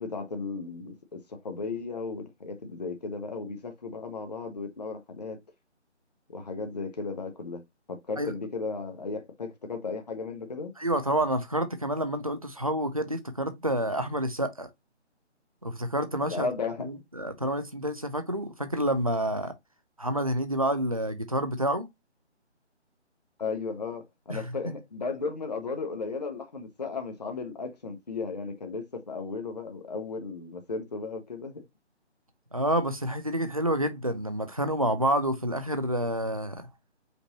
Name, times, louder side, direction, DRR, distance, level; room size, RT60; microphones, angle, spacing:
voice 1, 0.0-5.4 6.3-7.6 7.9-10.7 16.2-17.0 23.4-31.7, left 4 dB, 35° left, 0.9 m, -35 dB
voice 2, 10.8-14.7 15.6-16.5 16.8-19.5 20.0-21.9 24.3-24.4 32.5-36.7, right 1 dB, 30° right, 0.4 m, -28 dB
5.2 x 2.6 x 2.9 m
figure-of-eight pair, 170°, 35 cm